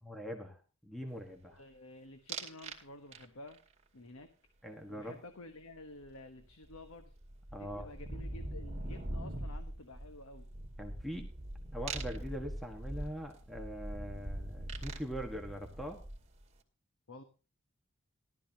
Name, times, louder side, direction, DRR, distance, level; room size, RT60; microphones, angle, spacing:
voice 1, 0.0-1.6 4.6-5.2 7.5-7.9 10.8-11.3 11.7-16.0, equal, ahead, 3 dB, 1.4 m, -42 dB
voice 2, 1.4-3.6 3.9-4.3 4.9-7.1 7.6-10.5 17.1-17.2, left 2 dB, 80° left, 7 dB, 1.2 m, -51 dB
sound 1, 2.3-2.8 3.1-3.6 6.0-6.1 6.4-16.4, right 1 dB, 30° right, 2.2 m, -42 dB
17.0 x 12.5 x 2.9 m, 0.34 s
head